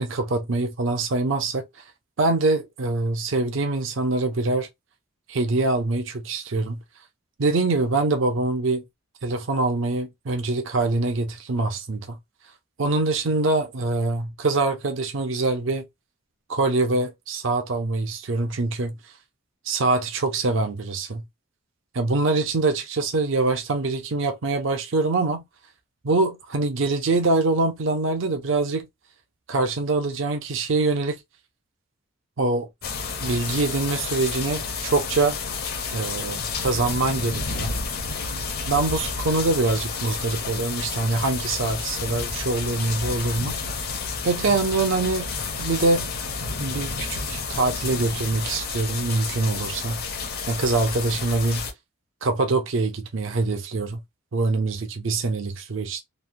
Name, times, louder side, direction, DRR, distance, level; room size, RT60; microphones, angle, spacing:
voice 1, 0.0-1.6 2.2-4.7 5.3-6.8 7.4-8.8 9.2-12.2 12.8-15.8 16.5-19.0 19.7-21.2 21.9-25.4 26.0-28.9 29.5-31.2 32.4-32.7 33.2-35.4 35.9-37.7 38.7-43.6 44.2-45.3 45.6-46.1 46.6-50.0 50.5-51.7 52.2-54.0 54.3-56.0, right 3 dB, 60° right, 0.5 m, -24 dB
sound 1, 32.8-51.7, left 4 dB, 45° left, 0.6 m, -30 dB
3.1 x 2.1 x 2.5 m
head